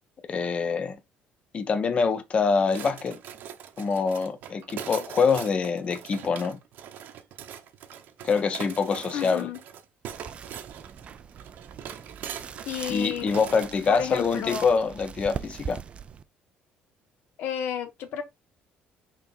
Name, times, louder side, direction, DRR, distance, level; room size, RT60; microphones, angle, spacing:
voice 1, 0.3-1.0 1.5-3.2 3.8-6.6 8.2-9.5 12.9-15.8, left 5 dB, 35° left, 1.0 m, -25 dB
sound 1, 2.7-13.8, right 9 dB, 65° right, 1.1 m, -42 dB
voice 2, 9.1-9.6 12.7-13.3 13.9-14.7 17.4-18.2, left 9 dB, 70° left, 1.9 m, -31 dB
sound 2, 10.1-16.2, right 7 dB, 35° right, 0.5 m, -41 dB
5.9 x 4.1 x 4.5 m
cardioid pair, 150°, 4 cm